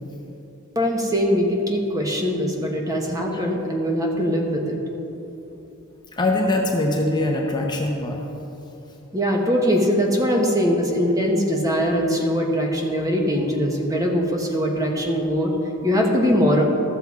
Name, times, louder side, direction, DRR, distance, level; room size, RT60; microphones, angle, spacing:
voice 1, 0.7-4.8 9.1-16.6, equal, 15° right, 0 dB, 1.1 m, -21 dB
voice 2, 6.1-8.2, left 2 dB, 20° left, 0 dB, 0.7 m, -22 dB
13.0 x 6.8 x 4.7 m, 3.0 s
head